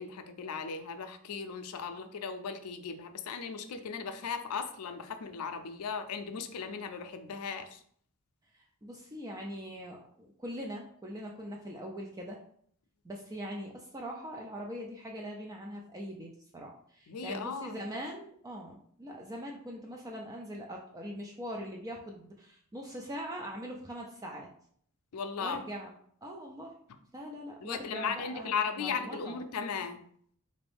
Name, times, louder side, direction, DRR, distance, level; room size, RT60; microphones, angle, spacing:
voice 1, 0.0-7.8 17.1-17.8 25.1-25.6 27.6-30.0, left 6 dB, 90° left, 8 dB, 0.5 m, -37 dB
voice 2, 8.5-12.4 13.0-24.5 25.4-25.9 26.2-26.7 27.1-28.5 28.8-29.4, equal, 15° right, 0 dB, 0.4 m, -42 dB
3.8 x 2.6 x 3.4 m, 0.62 s
head